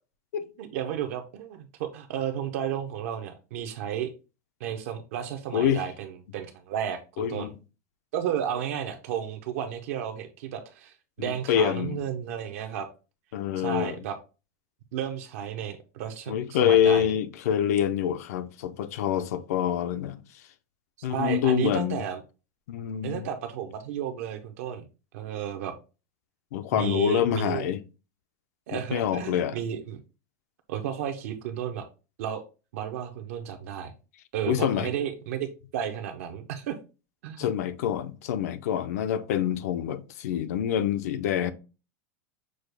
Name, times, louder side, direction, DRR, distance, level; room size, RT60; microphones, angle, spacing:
voice 1, 0.6-4.1 4.6-7.5 8.1-12.9 13.6-14.2 14.9-17.1 21.0-22.2 23.0-24.8 25.1-25.7 26.7-27.6 28.7-30.0 30.7-31.9 32.2-32.4 32.7-33.9 34.3-35.5 35.7-36.8 37.2-37.5, right 9 dB, 60° right, 0.6 m, -33 dB
voice 2, 5.5-5.8 7.2-7.5 11.2-12.0 13.3-14.0 16.3-20.2 21.0-22.0 22.7-23.2 26.5-27.8 28.7-29.6 34.5-34.9 37.4-41.5, left 9 dB, 70° left, 0.5 m, -26 dB
6.3 x 2.3 x 3.3 m
supercardioid pair, 175°, 9 cm